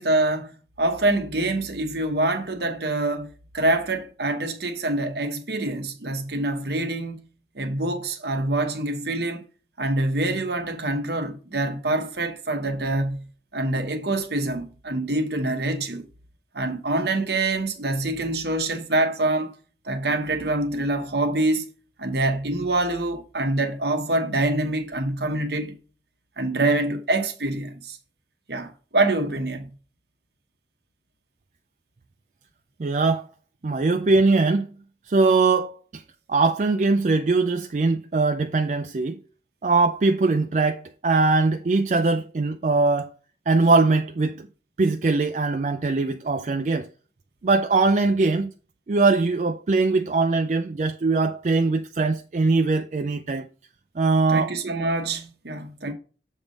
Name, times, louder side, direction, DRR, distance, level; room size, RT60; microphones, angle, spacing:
voice 1, 0.0-7.2 7.5-9.4 9.8-13.3 13.5-16.0 16.5-19.5 19.8-21.7 22.0-25.8 26.4-28.0 28.5-29.7 54.3-55.9, right 2 dB, 60° right, 1.0 m, -25 dB
voice 2, 32.8-33.2 33.6-34.7 35.1-36.0 36.3-39.2 39.6-43.1 43.5-44.5 44.8-46.9 47.4-48.5 48.9-53.5 54.0-54.5, right 3 dB, 40° right, 0.4 m, -21 dB
7.2 x 3.5 x 5.2 m
head